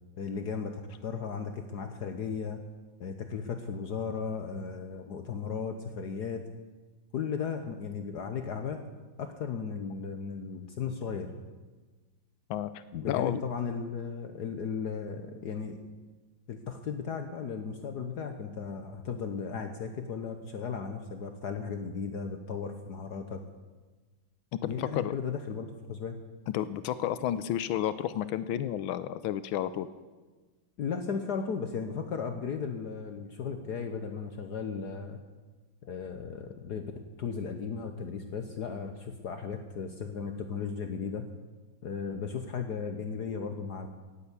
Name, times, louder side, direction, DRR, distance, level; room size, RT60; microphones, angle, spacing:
voice 1, 0.2-0.7 1.0-2.6 3.0-6.4 7.1-8.8 9.2-11.3 12.9-15.8 16.5-23.4 24.6-26.2 30.8-35.2 35.8-36.8 37.2-41.2 41.8-43.9, left 6 dB, 60° left, 6 dB, 1.4 m, -35 dB
voice 2, 12.5-13.4 24.6-25.1 26.5-29.9, left 11 dB, 80° left, 14 dB, 1.4 m, -31 dB
18.0 x 8.2 x 8.3 m, 1.3 s
omnidirectional pair, 2.2 m